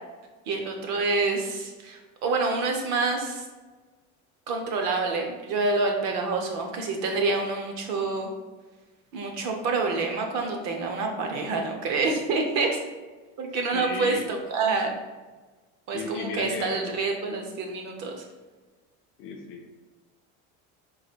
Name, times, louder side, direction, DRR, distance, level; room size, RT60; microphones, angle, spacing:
voice 1, 0.5-3.4 4.5-8.3 9.1-12.8 13.4-14.9 15.9-18.2, right 3 dB, 50° right, 2 dB, 0.7 m, -27 dB
voice 2, 13.7-14.3 15.9-17.0 19.2-19.9, left 4 dB, 40° left, 2 dB, 0.4 m, -35 dB
3.9 x 2.6 x 4.5 m, 1.3 s
cardioid pair, 170°, 34 cm